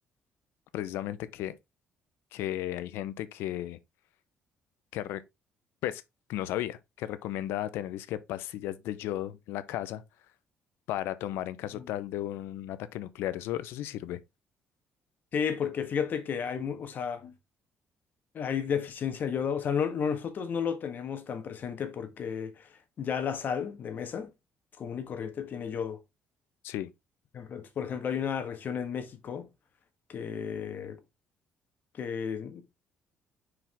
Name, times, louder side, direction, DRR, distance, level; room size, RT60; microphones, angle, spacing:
voice 1, 0.7-1.6 2.3-3.8 4.9-5.2 5.8-6.0 6.3-10.0 10.9-14.2 26.6-26.9, left 13 dB, 85° left, 0.6 m, -34 dB
voice 2, 15.3-17.3 18.3-24.3 24.8-26.0 27.3-29.5 30.1-31.0 31.9-32.6, left 7 dB, 55° left, 1.5 m, -33 dB
5.8 x 4.9 x 3.4 m
cardioid pair, 85°, 4 cm